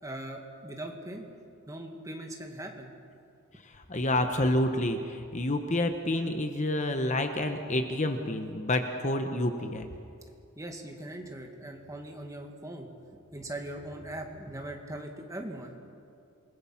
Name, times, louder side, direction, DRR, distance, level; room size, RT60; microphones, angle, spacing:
voice 1, 0.0-1.3 1.7-2.9 10.6-12.9 13.3-15.8, right 1 dB, 15° right, 2 dB, 2.1 m, -40 dB
voice 2, 3.6-9.9, left 1 dB, 35° left, 6 dB, 1.1 m, -29 dB
27.5 x 20.5 x 5.9 m, 2.5 s
head